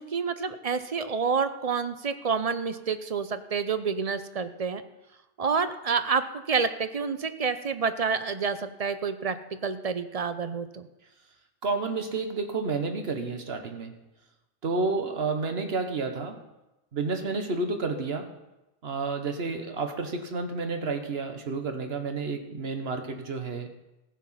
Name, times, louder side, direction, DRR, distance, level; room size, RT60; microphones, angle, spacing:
voice 1, 0.0-4.8 5.4-6.2 6.5-9.4 9.6-10.9, right 5 dB, 40° right, 11 dB, 0.7 m, -28 dB
voice 2, 11.6-13.9 14.6-16.4 16.9-18.3 18.8-23.7, right 3 dB, 80° right, 6 dB, 1.5 m, -30 dB
15.0 x 7.4 x 5.7 m, 0.98 s
omnidirectional pair, 1.0 m